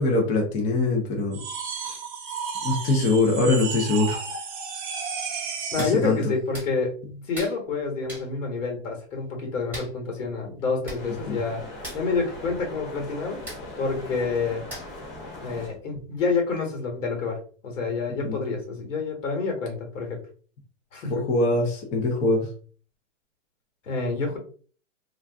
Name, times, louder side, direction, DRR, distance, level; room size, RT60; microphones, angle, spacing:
voice 1, 0.0-1.4 1.8-2.0 2.6-4.2 5.8-6.2 11.3-11.4 18.2-18.4 21.1-22.5, left 2 dB, 20° left, 0 dB, 0.5 m, -23 dB
sound 1, 1.3-6.0, right 6 dB, 40° right, 0.8 m, -33 dB
voice 2, 5.7-11.6 11.9-13.4 13.8-14.6 15.4-20.2 20.9-21.3 23.9-24.4, left 4 dB, 80° left, 2 dB, 1.4 m, -28 dB
Hands, 5.8-6.0 6.5-6.7 7.3-7.6 8.1-8.3 9.7-9.9 10.6-10.7 10.8-11.0 11.3-11.5 11.8-12.0 13.5-13.6 14.7-15.0 15.5-15.6, right 1 dB, 5° right, 1.1 m, -37 dB
sound 2, 11.0-15.8, left 2 dB, 45° left, 1.1 m, -40 dB
2.5 x 2.2 x 3.4 m, 0.43 s
hypercardioid pair, 145°, 37 cm